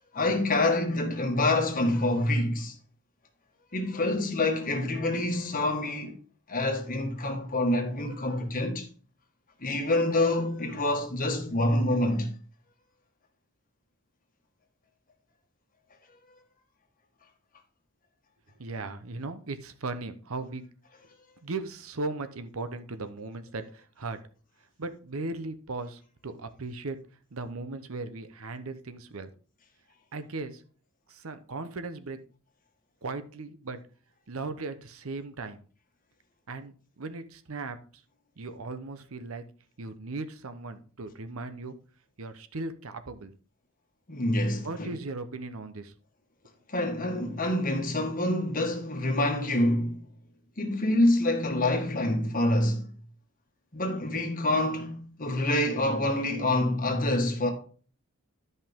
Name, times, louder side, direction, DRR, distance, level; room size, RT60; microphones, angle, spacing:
voice 1, 0.1-2.7 3.7-6.2 6.5-8.9 9.6-12.3 44.1-44.9 46.7-50.1 50.6-52.9 53.7-57.5, left 1 dB, 40° left, 1.7 m, -26 dB
voice 2, 18.6-20.6 21.4-24.2 24.8-27.0 27.3-29.3 30.1-30.6 31.1-32.2 33.0-33.8 34.3-35.6 36.5-38.0 38.4-39.4 39.8-41.8 42.2-43.3 44.6-45.9, right 3 dB, 70° right, 0.8 m, -37 dB
12.5 x 5.4 x 3.6 m
head